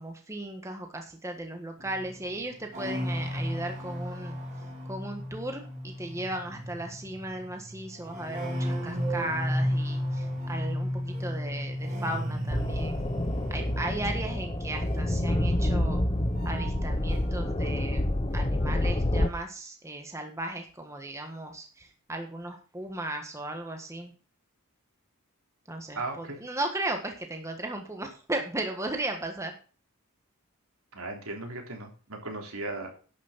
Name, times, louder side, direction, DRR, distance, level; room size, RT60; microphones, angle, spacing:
voice 1, 0.0-4.4 4.8-13.1 13.5-16.0 16.4-18.0 18.3-24.1 25.7-29.5, right 1 dB, 15° right, 4 dB, 1.5 m, -36 dB
sound 1, 1.8-17.6 17.9-18.7, equal, 35° right, 3.9 m, -34 dB
sound 2, 12.5-19.3, left 1 dB, 25° left, 0.8 m, -28 dB
voice 2, 25.9-26.4 30.9-32.9, right 2 dB, 75° right, 2 dB, 3.5 m, -36 dB
11.5 x 6.3 x 7.3 m, 0.38 s
head